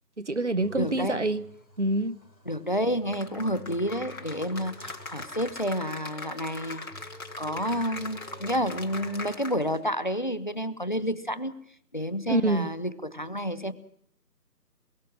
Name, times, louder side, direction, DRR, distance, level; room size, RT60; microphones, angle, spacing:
voice 1, 0.2-1.4 1.8-2.2 12.3-12.7, right 2 dB, 45° right, 1.0 m, -26 dB
sound 1, 0.6-5.8 6.1-6.2 6.4-6.5 6.9-9.7, right 1 dB, 90° left, 3.9 m, -51 dB
voice 2, 0.8-1.2 2.5-6.9 7.4-11.5 11.9-13.7, equal, 30° left, 0.9 m, -30 dB
Cheering / Applause, 3.1-9.8, left 2 dB, 55° left, 4.5 m, -41 dB
24.5 x 22.0 x 6.2 m
figure-of-eight pair, 165°, 49 cm